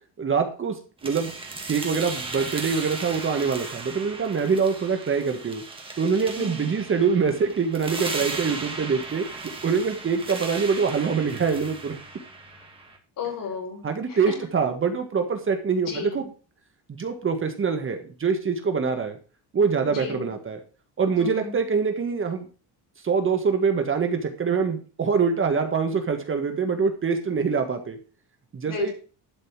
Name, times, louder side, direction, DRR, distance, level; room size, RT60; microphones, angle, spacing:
voice 1, 0.2-1.3 1.7-5.6 6.0-12.0 13.8-16.2 17.0-19.2 19.5-20.6 21.0-22.5 23.0-28.0 28.5-28.9, right 5 dB, 30° right, 5 dB, 1.6 m, -24 dB
sound 1, 1.0-13.0, right 3 dB, 15° right, 2.2 m, -36 dB
voice 2, 6.4-6.7 13.2-14.5 15.8-16.3 19.9-20.3 21.2-21.5 28.7-28.9, left 5 dB, 50° left, 0 dB, 5.2 m, -34 dB
12.0 x 5.5 x 7.2 m, 0.37 s
cardioid pair, 155°, 40 cm